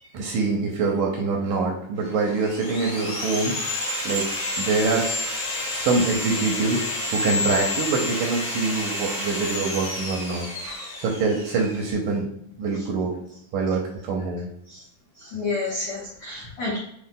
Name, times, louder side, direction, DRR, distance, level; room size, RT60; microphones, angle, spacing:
voice 1, 0.1-3.8 4.0-4.3 4.6-5.2 5.7-6.9 7.1-10.5 11.0-12.3 12.6-13.2 13.5-14.5, right 4 dB, 75° right, 0 dB, 1.9 m, -25 dB
Sawing, 2.1-11.9, left 2 dB, 55° left, 2.5 m, -29 dB
voice 2, 15.2-16.8, left 3 dB, 85° left, -4 dB, 1.2 m, -31 dB
7.4 x 3.2 x 2.2 m, 0.73 s
omnidirectional pair, 4.1 m